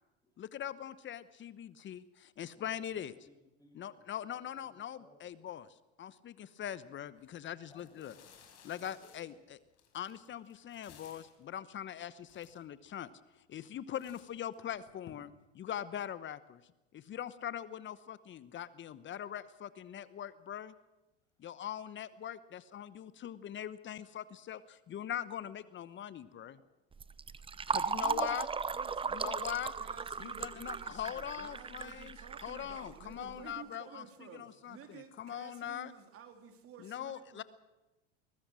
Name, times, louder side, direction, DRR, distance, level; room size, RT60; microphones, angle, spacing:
voice 1, 0.4-3.1 3.7-5.7 6.0-8.1 8.6-9.3 9.9-13.1 13.5-16.6 16.9-20.7 21.4-26.6 27.7-28.5 29.1-29.7 30.2-32.2 32.4-35.9 36.8-37.4, left 10 dB, 35° left, 15 dB, 1.0 m, -42 dB
voice 2, 2.5-5.5 7.7-8.4 8.8-9.4 21.4-21.7 22.9-23.0 27.0-27.8 30.6-30.7 32.2-32.7 34.8-35.0, left 1 dB, 10° left, 2 dB, 7.7 m, -65 dB
sound 1, 7.2-7.3 7.7-11.4 12.0-12.1 12.2-12.9 13.4-13.7 13.9-15.1, left 9 dB, 50° left, 5.6 m, -59 dB
Fill (with liquid), 26.9-33.3, right 5 dB, 15° right, 0.8 m, -37 dB
voice 3, 27.9-28.4 28.7-37.4, right 7 dB, 45° right, 6 dB, 3.4 m, -53 dB
22.5 x 19.0 x 6.4 m, 1.0 s
hypercardioid pair, 85°, 32 cm